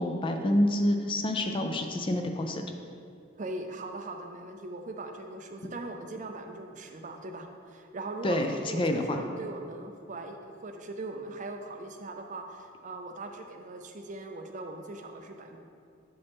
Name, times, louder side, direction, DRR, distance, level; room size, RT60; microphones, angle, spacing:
voice 1, 0.0-2.6 8.2-8.5 8.7-9.2, left 1 dB, 25° left, 5 dB, 0.4 m, -27 dB
voice 2, 3.4-15.6, right 2 dB, 40° right, 4 dB, 0.5 m, -40 dB
6.8 x 6.7 x 3.5 m, 2.4 s
head